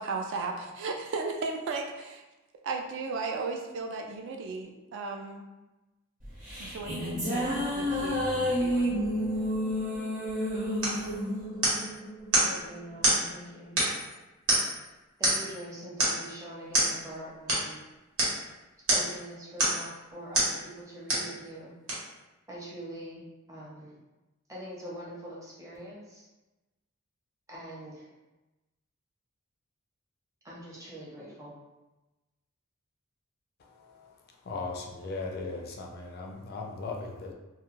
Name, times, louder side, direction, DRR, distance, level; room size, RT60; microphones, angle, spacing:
voice 1, 0.0-2.2 2.6-5.5 6.6-9.0, right 3 dB, 60° right, 2 dB, 0.3 m, -35 dB
sound 1, 6.2-12.8, equal, 40° right, 0.9 m, -30 dB
sound 2, 10.8-11.0 11.6-11.9 12.3-12.5 13.0-13.2 13.8-14.1 14.5-14.8 15.2-15.5 16.0-16.2 16.7-16.9 17.5-17.7 18.2-18.4 18.9-19.2 19.6-19.9 20.3-20.6 21.1-21.3 21.9-22.0, right 1 dB, 75° right, 1.0 m, -26 dB
voice 2, 12.4-13.8 15.2-17.8 18.9-21.7 22.5-24.0 24.5-26.2 27.5-28.1 30.4-31.5, right 1 dB, 15° right, -5 dB, 0.6 m, -43 dB
voice 3, 33.8-34.1 34.4-37.3, left 3 dB, 45° left, 1 dB, 0.4 m, -38 dB
2.2 x 2.1 x 3.0 m, 1.1 s
head